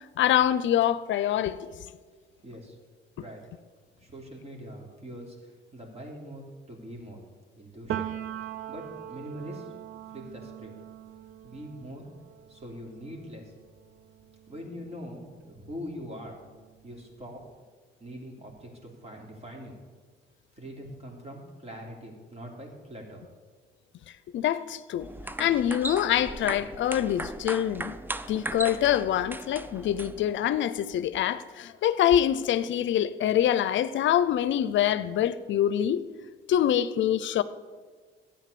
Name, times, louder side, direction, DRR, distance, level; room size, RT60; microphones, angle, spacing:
voice 1, 0.0-1.7 24.3-25.1 25.4-27.9 28.3-36.0 36.5-37.4, left 10 dB, 70° left, 0.6 m, -25 dB
voice 2, 2.4-2.8 3.2-3.4 4.0-7.2 7.5-8.1 8.4-9.7 10.1-10.7 11.4-12.0 12.5-13.5 14.5-16.4 16.8-17.4 18.0-19.8 20.6-23.2, equal, 30° right, 3.2 m, -43 dB
Piano, 7.9-15.5 15.9-17.4, right 10 dB, 70° right, 0.6 m, -41 dB
sound 1, 25.0-30.4, right 2 dB, 10° right, 0.5 m, -37 dB
12.5 x 8.9 x 6.8 m
cardioid pair, 90°, 20 cm